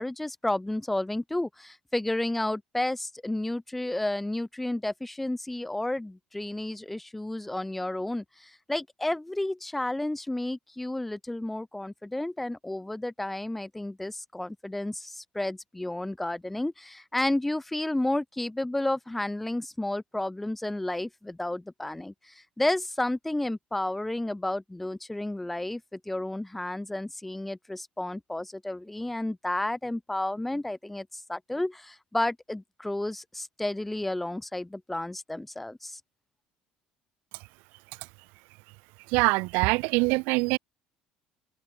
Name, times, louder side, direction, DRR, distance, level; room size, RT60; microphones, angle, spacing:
voice 1, 0.0-36.0, left 1 dB, 5° left, 2.8 m, -31 dB
voice 2, 39.1-40.6, right 27 dB, 85° right, 1.4 m, -24 dB
open air
cardioid pair, 175°, 3 cm